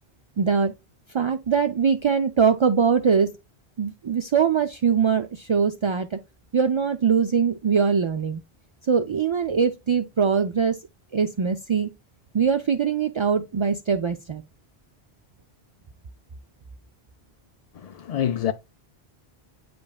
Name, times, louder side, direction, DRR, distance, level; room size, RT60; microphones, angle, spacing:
voice 1, 0.4-0.7 1.1-3.3 3.8-6.2 6.5-8.4 8.9-10.8 11.1-11.9 12.3-14.4, right 6 dB, 45° right, 0.3 m, -22 dB
voice 2, 17.7-18.5, left 9 dB, 55° left, 0.4 m, -26 dB
8.4 x 5.1 x 2.3 m
omnidirectional pair, 1.1 m